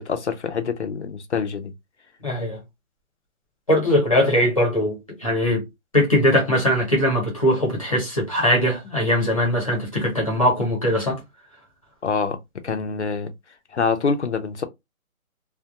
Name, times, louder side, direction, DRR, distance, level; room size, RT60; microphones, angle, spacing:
voice 1, 0.0-1.7 12.0-12.4 12.6-13.3 13.7-14.6, left 5 dB, 55° left, 0.5 m, -25 dB
voice 2, 2.2-2.6 3.7-5.6 5.9-11.2, equal, 25° left, 0.8 m, -20 dB
2.3 x 2.2 x 2.6 m
hypercardioid pair, 175°, 42 cm